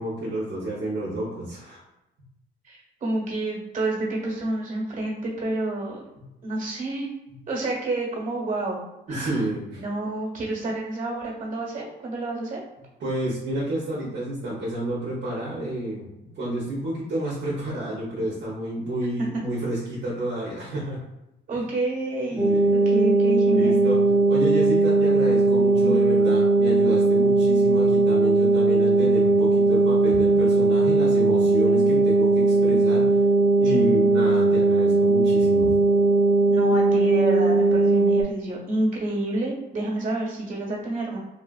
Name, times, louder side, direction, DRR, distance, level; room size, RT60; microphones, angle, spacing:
voice 1, 0.0-1.8 6.2-6.3 9.1-9.8 13.0-16.1 16.3-21.0 21.5-21.6 22.3-22.7 23.5-33.2 33.6-35.7, right 1 dB, 65° right, -6 dB, 0.8 m, -30 dB
voice 2, 2.6-6.0 6.4-7.1 7.5-8.8 9.1-9.4 9.7-12.6 19.2-19.4 21.5-23.8 25.8-26.0 33.6-33.9 35.6-35.7 36.5-41.2, right 2 dB, 40° right, -2 dB, 1.2 m, -29 dB
sound 1, 22.4-38.2, right 3 dB, 10° right, 0.7 m, -19 dB
3.1 x 2.3 x 2.3 m, 0.90 s
cardioid pair, 90°, 20 cm